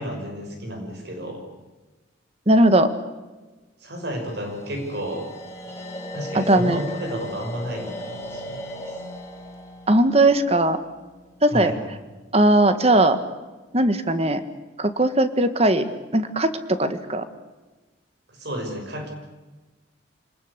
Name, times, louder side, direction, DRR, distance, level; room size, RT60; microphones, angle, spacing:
voice 1, 0.0-1.4 3.8-5.3 6.1-8.9 11.5-11.8 18.3-19.1, equal, 55° right, 3 dB, 5.8 m, -32 dB
voice 2, 2.5-2.9 6.3-6.8 9.9-10.8 11.4-11.7 12.3-13.2 13.7-14.4 14.8-15.9 16.1-16.5 16.8-17.3, right 1 dB, 30° right, 10 dB, 1.7 m, -18 dB
sound 1, 4.2-11.3, equal, 15° left, 4.5 m, -37 dB
26.5 x 20.0 x 8.2 m, 1.2 s
head